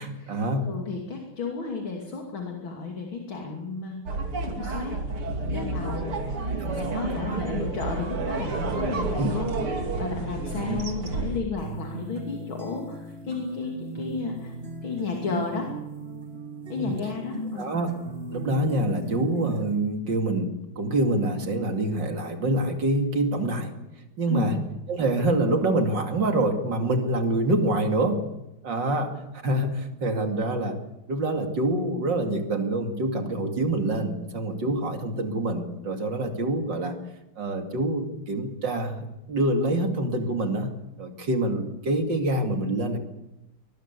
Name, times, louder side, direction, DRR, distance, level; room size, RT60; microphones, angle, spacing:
voice 1, 0.0-0.7 6.5-7.4 9.2-9.3 10.6-10.8 16.8-16.9 17.6-17.9 18.3-23.7 24.2-24.6 24.9-28.2 28.6-30.8 31.1-37.0 37.4-40.7 41.0-43.0, right 1 dB, 55° right, 5 dB, 3.1 m, -26 dB
voice 2, 0.7-5.0 5.5-9.6 10.0-14.5 14.8-15.7 16.7-17.7 24.3-24.6, left 4 dB, 70° left, 1 dB, 3.5 m, -33 dB
sound 1, 4.1-11.4, right 3 dB, 90° right, 3.7 m, -30 dB
sound 2, 11.6-19.6, right 2 dB, 30° right, 2.1 m, -38 dB
23.5 x 20.5 x 8.4 m, 0.91 s
omnidirectional pair, 2.3 m